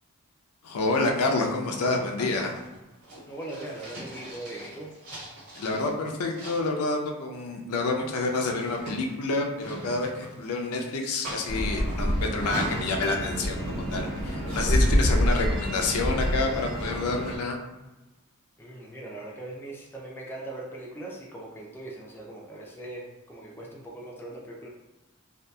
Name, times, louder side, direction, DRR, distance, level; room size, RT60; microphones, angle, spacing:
voice 1, 0.6-2.5 5.6-17.6, left 3 dB, 75° left, 2 dB, 0.4 m, -28 dB
sound 1, 1.2-5.9 6.3-7.0 8.0-10.7 11.2-12.9, right 1 dB, 85° right, 1.2 m, -41 dB
voice 2, 3.3-4.9 18.6-24.7, right 2 dB, 10° left, -3 dB, 0.3 m, -40 dB
sound 2, 11.5-17.4, equal, 60° right, 1.0 m, -27 dB
2.6 x 2.3 x 2.2 m, 1.0 s
head